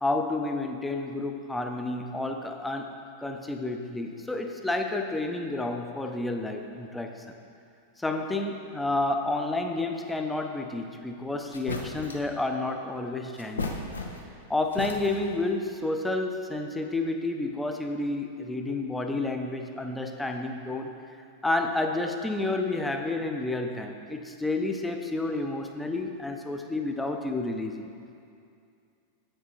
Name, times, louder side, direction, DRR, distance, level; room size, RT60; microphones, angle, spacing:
voice 1, 0.0-2.9 3.2-7.1 8.0-13.8 14.5-20.9 21.4-27.9, left 2 dB, 5° left, 4 dB, 0.6 m, -30 dB
sound 1, 11.1-11.2 11.5-12.3 13.3-14.4 14.7-15.4, left 3 dB, 70° left, 0.7 m, -35 dB
8.3 x 6.7 x 4.5 m, 2.5 s
figure-of-eight pair, 90°, 0 cm